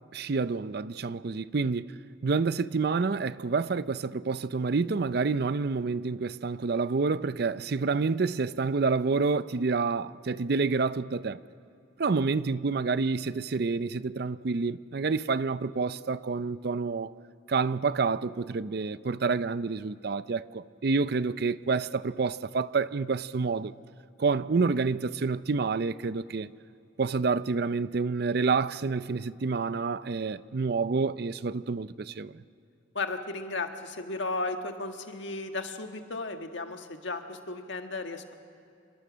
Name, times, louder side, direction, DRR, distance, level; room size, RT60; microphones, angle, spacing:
voice 1, 0.1-2.0 2.2-11.4 12.0-17.1 17.5-23.7 24.2-26.5 27.0-32.4, right 4 dB, 55° right, 0.5 m, -28 dB
voice 2, 32.9-38.4, left 3 dB, 70° left, 1.6 m, -35 dB
27.0 x 22.5 x 6.3 m
head